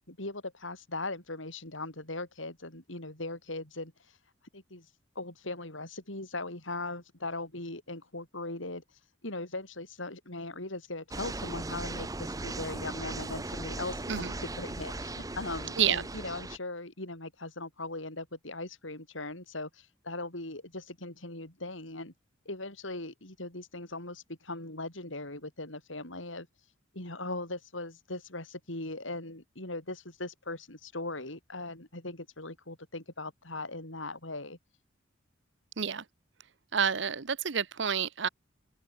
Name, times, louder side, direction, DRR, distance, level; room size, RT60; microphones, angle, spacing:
voice 1, 0.1-3.9 4.5-4.9 5.2-8.8 9.2-22.1 22.5-26.5 26.9-34.6, left 2 dB, 75° left, 5.9 m, -39 dB
sound 1, 11.1-16.6, right 2 dB, 20° right, 0.9 m, -38 dB
voice 2, 36.7-38.3, right 7 dB, 65° right, 0.9 m, -29 dB
open air
head